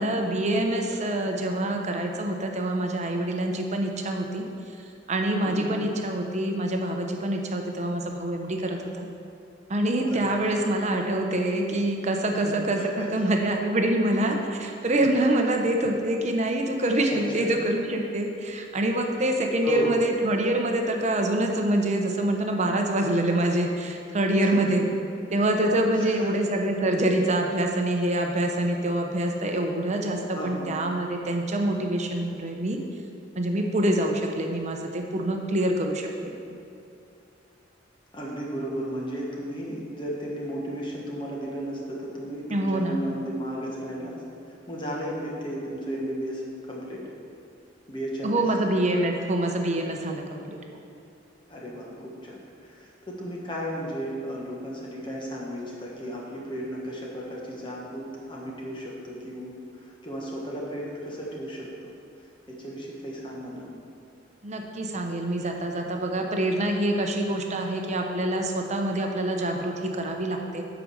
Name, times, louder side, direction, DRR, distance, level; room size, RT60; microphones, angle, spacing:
voice 1, 0.0-4.4 5.1-9.1 9.7-24.8 25.3-32.8 33.3-36.4 42.5-43.0 48.2-50.6 64.4-70.6, right 1 dB, 40° right, 3 dB, 0.8 m, -26 dB
voice 2, 5.4-5.8 10.1-10.5 12.4-12.5 12.8-13.1 17.1-17.5 19.6-20.0 24.4-24.7 26.0-26.4 30.4-30.7 38.1-47.0 47.9-48.4 51.5-61.9 62.5-63.7, right 1 dB, 25° left, -3 dB, 1.5 m, -34 dB
8.5 x 5.1 x 6.3 m, 2.6 s
head